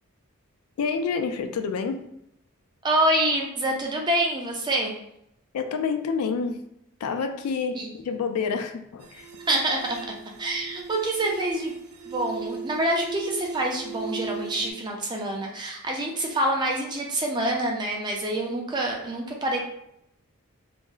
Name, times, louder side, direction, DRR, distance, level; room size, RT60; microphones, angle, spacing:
voice 1, 0.8-2.0 5.5-6.6 7.0-9.3, left 5 dB, 85° left, 6 dB, 0.3 m, -28 dB
voice 2, 2.8-4.9 7.7-7.9 9.5-10.0 10.4-11.7 12.1-19.7, right 1 dB, 20° right, 0 dB, 0.3 m, -26 dB
sound 1, 9.0-14.7, right 6 dB, 80° right, 0.5 m, -38 dB
2.5 x 2.0 x 3.7 m, 0.77 s
head